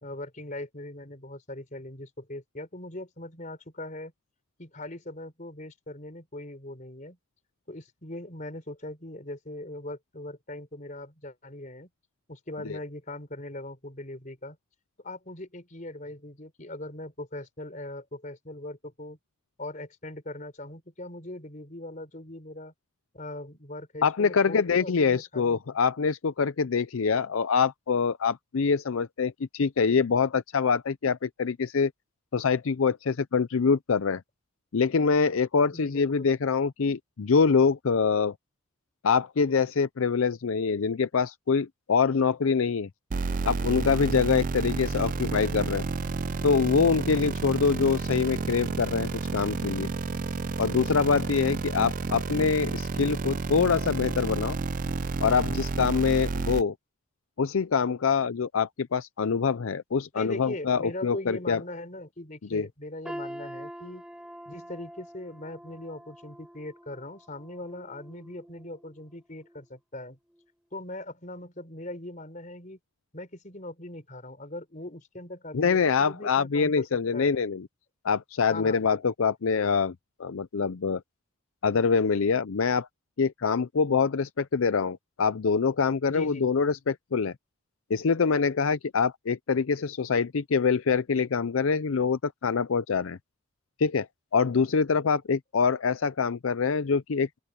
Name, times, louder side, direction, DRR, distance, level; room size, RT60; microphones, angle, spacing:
voice 1, 0.0-4.1 4.6-7.2 7.7-11.9 12.3-14.6 15.0-19.2 19.6-22.7 23.1-25.6 35.7-36.3 60.1-64.0 64.5-70.2 70.7-72.8 73.1-77.4 78.5-78.8 86.1-86.5, left 1 dB, 35° left, 4.2 m, -40 dB
voice 2, 24.0-31.9 32.3-34.2 34.7-38.3 39.0-42.9 43.4-45.9 46.4-49.9 50.6-54.6 55.2-56.7 57.4-61.6 62.5-62.7 75.5-77.7 78.0-79.9 80.2-81.0 81.6-82.9 83.2-87.3 87.9-93.2 93.8-94.1 94.3-97.4, left 5 dB, 75° left, 0.5 m, -25 dB
sound 1, 43.1-56.6, right 4 dB, 40° right, 0.4 m, -31 dB
sound 2, 63.0-69.0 69.4-69.6 70.4-70.5, equal, 5° right, 5.8 m, -44 dB
open air
head